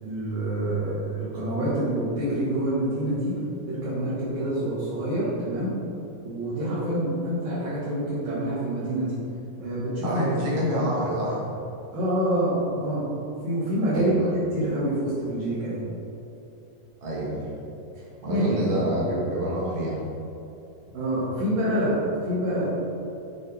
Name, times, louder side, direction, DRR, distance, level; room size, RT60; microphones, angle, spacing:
voice 1, 0.0-3.4 3.7-5.7 6.2-9.2 9.6-10.2 10.6-10.8 11.9-13.0 13.4-15.8 17.9-18.7 20.9-22.7, right 1 dB, 90° right, -12 dB, 3.6 m, -27 dB
voice 2, 10.0-11.4 13.9-14.3 17.0-17.5 18.2-20.0, right 1 dB, 30° right, -7 dB, 1.0 m, -27 dB
7.8 x 6.3 x 3.6 m, 2.8 s
omnidirectional pair, 3.9 m